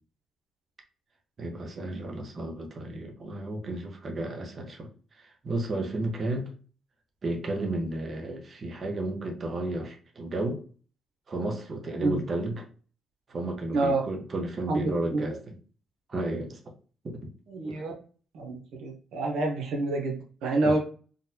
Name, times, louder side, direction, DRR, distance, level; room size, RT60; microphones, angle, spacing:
voice 1, 1.4-6.5 7.2-10.6 11.3-12.7 13.3-15.6 16.1-16.6 17.0-17.3 17.6-17.8 20.6-20.8, right 2 dB, 40° right, 2 dB, 0.8 m, -33 dB
voice 2, 14.7-15.3 17.5-17.9 18.3-20.8, right 2 dB, 80° right, 1 dB, 0.8 m, -28 dB
3.8 x 2.2 x 2.7 m, 0.38 s
cardioid pair, 90°, 0 cm